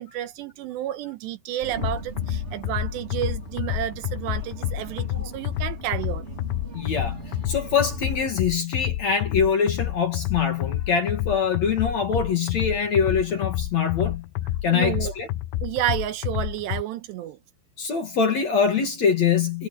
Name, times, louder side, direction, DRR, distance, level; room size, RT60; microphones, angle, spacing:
voice 1, 0.0-6.3 14.7-15.2 15.6-17.4, right 12 dB, 75° right, 2.9 m, -30 dB
sound 1, 1.6-8.3, right 2 dB, 20° right, 2.1 m, -39 dB
sound 2, 1.8-16.8, left 14 dB, 80° left, 2.2 m, -29 dB
voice 2, 6.7-14.3 14.6-15.3 17.8-19.7, left 6 dB, 50° left, 2.6 m, -24 dB
omnidirectional pair, 5.3 m